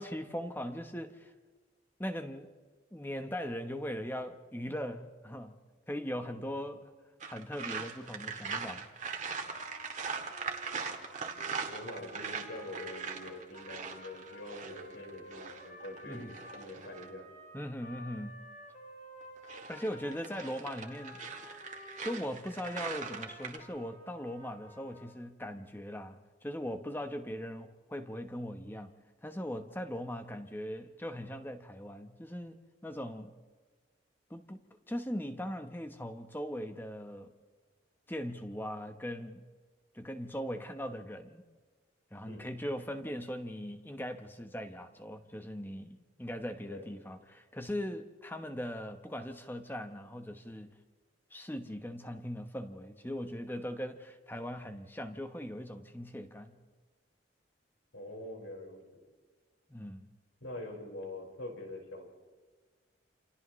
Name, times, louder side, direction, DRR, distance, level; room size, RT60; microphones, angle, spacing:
voice 1, 0.0-1.3 2.0-2.5 2.9-6.9 7.2-8.9 16.1-16.3 17.5-18.4 19.7-21.4 22.0-33.4 34.3-34.6 34.9-37.3 38.1-39.5 39.9-41.4 42.1-50.8 51.3-56.6 59.7-60.1, equal, 10° left, 7 dB, 1.1 m, -40 dB
sound 1, 7.2-17.1 19.2-23.6, right 5 dB, 40° right, 1.8 m, -41 dB
Trumpet, 9.1-22.2 22.6-25.2, left 1 dB, 45° left, 5.2 m, -52 dB
voice 2, 11.7-17.3 42.2-42.5 46.7-46.8 57.9-58.8 60.4-62.1, left 1 dB, 85° left, 0 dB, 5.0 m, -45 dB
29.0 x 28.0 x 3.2 m, 1.4 s
head